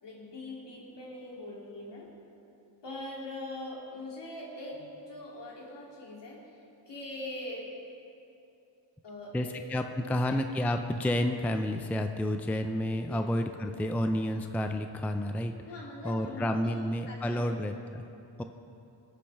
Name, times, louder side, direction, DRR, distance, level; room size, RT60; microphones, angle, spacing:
voice 1, 0.0-2.1 2.8-6.4 6.9-7.6 9.0-10.4 13.0-13.2 15.6-17.5, left 1 dB, 65° left, -4 dB, 3.0 m, -42 dB
voice 2, 9.3-15.5 16.0-18.0 18.4-18.5, left 1 dB, 5° left, 6 dB, 0.4 m, -30 dB
19.0 x 8.5 x 3.5 m, 2.7 s
cardioid pair, 95°, 46 cm